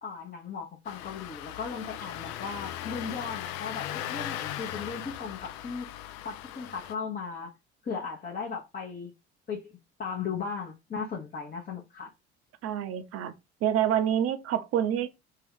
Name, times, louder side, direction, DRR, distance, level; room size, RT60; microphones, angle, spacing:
voice 1, 0.0-5.9 6.2-7.5 7.8-9.1 9.5-12.1, left 5 dB, 25° left, 0.9 m, -37 dB
Engine starting, 0.9-6.9, left 12 dB, 55° left, 0.4 m, -38 dB
voice 2, 12.6-13.3 13.6-15.1, right 10 dB, 45° right, 0.6 m, -27 dB
2.7 x 2.3 x 3.5 m
figure-of-eight pair, 55°, 34 cm